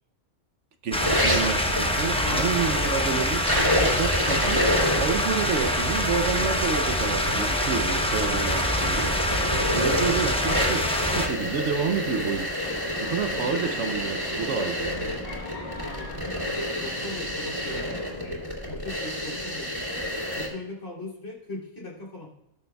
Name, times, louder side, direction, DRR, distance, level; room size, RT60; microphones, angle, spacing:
voice 1, 0.8-3.4 3.7-9.1 9.7-10.9 11.1-12.5 13.0-15.1, right 6 dB, 65° right, 7 dB, 0.9 m, -29 dB
sound 1, 0.9-11.3, left 1 dB, 5° left, 0.4 m, -25 dB
sound 2, 1.0-20.5, equal, 20° right, 2.4 m, -29 dB
voice 2, 2.1-2.5 12.6-12.7 13.3-13.7 15.8-16.5 16.8-20.0 20.3-22.3, left 2 dB, 60° left, -3 dB, 3.1 m, -39 dB
sound 3, 12.6-18.2, left 2 dB, 30° left, 1.3 m, -40 dB
19.0 x 6.5 x 2.3 m, 0.83 s
omnidirectional pair, 1.4 m